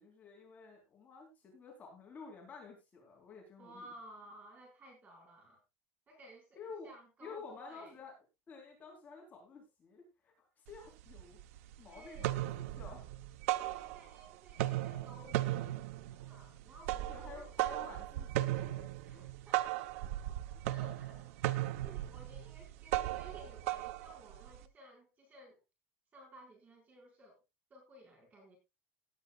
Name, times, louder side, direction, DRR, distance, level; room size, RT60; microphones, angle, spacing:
voice 1, 0.0-3.9 6.6-6.9 7.2-13.1 17.1-19.3, left 4 dB, 20° left, 0 dB, 3.9 m, -51 dB
voice 2, 3.6-5.6 6.1-8.0 11.9-12.4 13.5-17.4 19.0-25.6 26.1-27.4 27.7-28.6, right 1 dB, 20° right, 0 dB, 5.2 m, -56 dB
sound 1, 10.7-10.8 11.1-11.7 12.0-14.2 14.5-24.6, right 15 dB, 75° right, 0.9 m, -37 dB
18.0 x 9.9 x 2.4 m, 0.24 s
cardioid pair, 165°, 8 cm